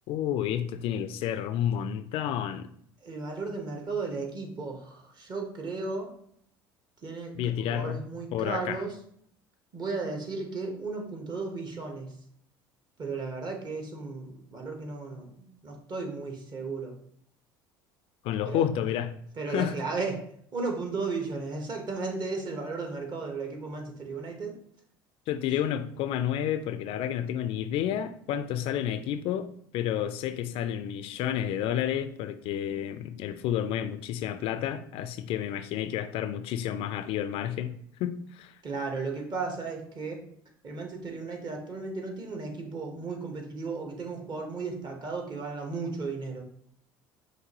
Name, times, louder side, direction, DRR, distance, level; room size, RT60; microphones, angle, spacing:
voice 1, 0.1-2.7 7.4-8.0 8.3-8.8 18.2-19.1 19.5-19.8 25.3-37.7 38.0-38.6, left 10 dB, 55° left, 0.3 m, -30 dB
voice 2, 3.0-6.1 7.0-7.3 7.7-9.0 9.7-12.2 13.0-16.9 18.4-18.6 19.4-20.2 20.5-24.5 38.6-40.2 40.6-46.4, right 3 dB, 40° right, 1.3 m, -35 dB
5.9 x 2.6 x 2.9 m
hypercardioid pair, 70°, 11 cm